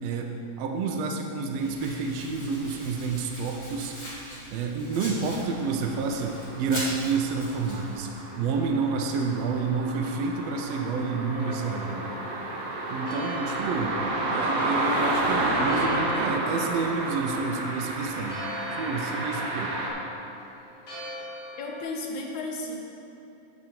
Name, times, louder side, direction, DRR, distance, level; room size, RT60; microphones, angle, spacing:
voice 1, 0.0-4.0 4.5-8.1 8.3-12.2 12.9-14.0 14.3-18.4 18.7-19.8, right 4 dB, 85° right, 2 dB, 1.4 m, -29 dB
Domestic sounds home sounds, 1.5-7.9, equal, 15° left, 1.4 m, -41 dB
sound 1, 5.2-19.9, right 2 dB, 65° right, 1.4 m, -31 dB
Church bell, 11.2-21.8, left 1 dB, 45° left, 2.7 m, -43 dB
voice 2, 21.6-22.8, left 2 dB, 75° left, 0 dB, 2.0 m, -33 dB
15.5 x 5.2 x 2.9 m, 2.8 s
omnidirectional pair, 3.6 m